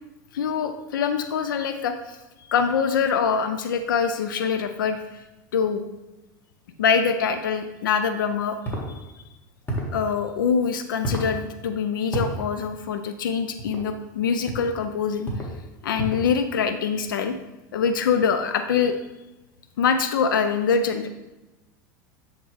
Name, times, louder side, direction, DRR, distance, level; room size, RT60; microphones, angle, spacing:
voice 1, 0.3-2.2 2.5-5.0 5.5-5.8 6.8-8.6 9.1-9.2 9.9-15.3 15.8-17.3 17.7-19.0 19.8-21.1, left 6 dB, 85° left, 8 dB, 0.5 m, -24 dB
sound 1, 8.6-8.9 9.7-10.0 11.0-11.3 12.1-12.4 13.6-13.9 14.5-14.7 15.2-15.6 16.0-16.3, right 1 dB, 15° left, 1.8 m, -29 dB
9.8 x 3.6 x 3.2 m, 1.0 s
hypercardioid pair, 95°, 11 cm